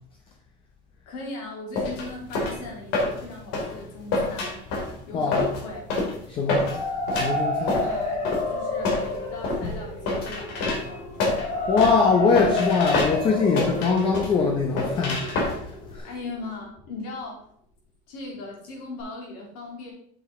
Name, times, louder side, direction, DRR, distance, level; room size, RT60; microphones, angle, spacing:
voice 1, 1.0-4.7 5.1-5.8 7.8-11.7 16.0-17.5 18.1-19.9, left 2 dB, 90° left, 3.2 m, -39 dB
sound 1, 1.8-16.0, left 2 dB, 65° left, 2.5 m, -28 dB
voice 2, 5.1-5.5 6.3-6.7 7.2-7.8 11.7-15.3 15.9-16.1, left 4 dB, 25° left, 0.7 m, -22 dB
sound 2, 6.4-16.3, left 2 dB, 50° left, 3.7 m, -30 dB
7.6 x 7.0 x 3.6 m
cardioid pair, 170°, 19 cm